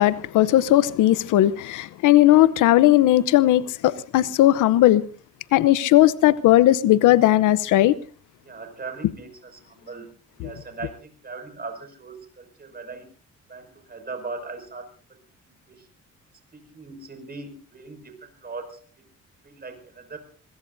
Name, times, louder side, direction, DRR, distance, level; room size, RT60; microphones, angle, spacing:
voice 1, 0.0-5.0 5.5-7.9, left 14 dB, 85° left, 0.8 m, -17 dB
voice 2, 8.4-13.1 13.5-15.9 16.5-18.8 19.4-20.2, right 4 dB, 30° right, 5.8 m, -39 dB
24.0 x 22.0 x 2.7 m
cardioid pair, 90°, 30 cm